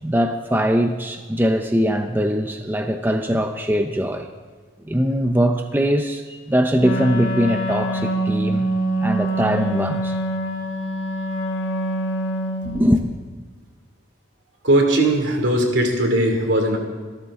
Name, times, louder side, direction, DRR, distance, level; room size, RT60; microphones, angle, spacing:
voice 1, 0.0-4.3 4.9-8.7 9.0-10.2 12.6-13.1, equal, 10° right, 5 dB, 0.6 m, -21 dB
Wind instrument woodwind instrument, 6.8-12.9, right 1 dB, 75° left, 1.8 m, -25 dB
voice 2, 14.6-16.8, right 1 dB, 70° right, 3 dB, 2.8 m, -19 dB
25.5 x 12.5 x 3.7 m, 1.5 s
head